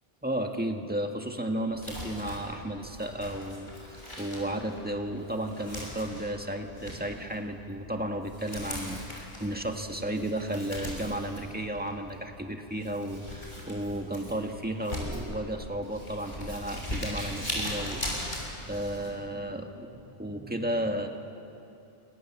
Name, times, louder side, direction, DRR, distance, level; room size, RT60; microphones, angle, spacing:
voice 1, 0.2-18.3 18.7-21.1, right 1 dB, 10° right, 3 dB, 1.8 m, -33 dB
Crumpling crinkling, 1.7-19.1, left 1 dB, 45° left, 6.3 m, -40 dB
28.0 x 23.5 x 7.5 m, 2.8 s
omnidirectional pair, 1.2 m